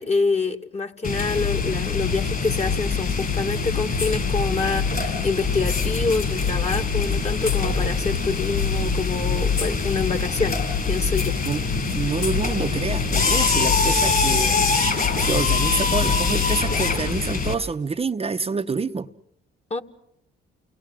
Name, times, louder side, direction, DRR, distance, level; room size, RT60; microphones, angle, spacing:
voice 1, 0.0-10.6 10.9-11.4 19.7-19.8, left 4 dB, 30° left, 2.2 m, -26 dB
sound 1, 1.0-17.5, left 5 dB, 50° left, 6.9 m, -23 dB
voice 2, 11.9-19.1, right 4 dB, 30° right, 1.0 m, -27 dB
29.5 x 20.0 x 7.7 m
cardioid pair, 90°, 20 cm